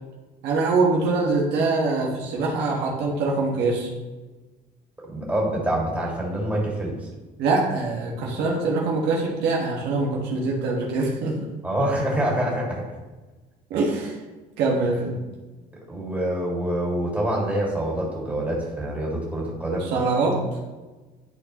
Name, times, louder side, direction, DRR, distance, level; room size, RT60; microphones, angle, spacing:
voice 1, 0.4-3.9 7.4-11.3 13.7-14.2 14.6-15.2 19.8-20.4, right 3 dB, 85° right, -3 dB, 1.6 m, -23 dB
voice 2, 5.1-6.9 11.6-12.8 15.9-19.9, right 1 dB, 10° right, -4 dB, 2.2 m, -26 dB
11.0 x 4.1 x 3.0 m, 1.2 s
cardioid pair, 110°, 17 cm